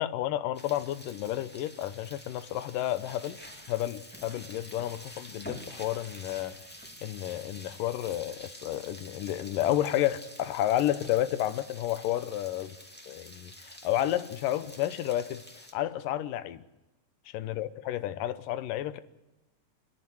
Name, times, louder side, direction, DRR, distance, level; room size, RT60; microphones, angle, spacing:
voice 1, 0.0-3.4 3.7-6.6 7.0-12.7 13.1-15.4 15.7-16.6 17.3-19.0, left 13 dB, 90° left, 2.5 m, -31 dB
sound 1, 0.5-15.7, equal, 5° left, 1.4 m, -48 dB
30.0 x 10.5 x 9.4 m
omnidirectional pair, 3.7 m